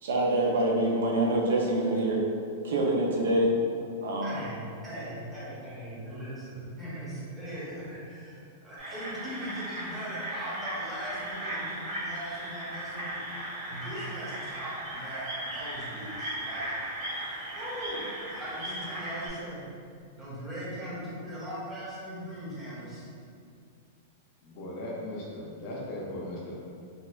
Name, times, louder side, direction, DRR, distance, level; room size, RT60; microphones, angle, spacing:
voice 1, 0.0-2.2 2.6-3.5 4.0-4.4, right 1 dB, 80° right, -2 dB, 0.7 m, -25 dB
voice 2, 4.2-13.2 13.7-16.6 17.6-19.6 20.2-23.1, equal, 10° right, -9 dB, 0.8 m, -39 dB
sound 1, 8.8-19.3, right 1 dB, 40° right, 1.2 m, -37 dB
voice 3, 24.4-26.6, left 1 dB, 35° left, -5 dB, 0.5 m, -38 dB
3.9 x 2.4 x 2.4 m, 2.3 s
supercardioid pair, 170°, 0 cm